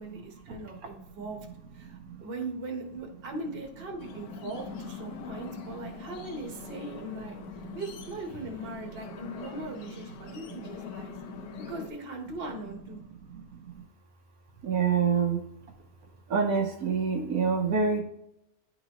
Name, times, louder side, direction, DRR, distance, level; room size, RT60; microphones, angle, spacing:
voice 1, 0.0-1.5 1.7-7.4 7.7-11.2 11.7-13.0, right 2 dB, 40° right, 2 dB, 1.3 m, -39 dB
sound 1, 4.0-11.9, left 6 dB, 80° left, 1.3 m, -43 dB
voice 2, 14.6-15.4 16.3-18.0, right 5 dB, 75° right, 1 dB, 1.3 m, -25 dB
10.5 x 4.0 x 2.9 m, 0.83 s
omnidirectional pair, 1.6 m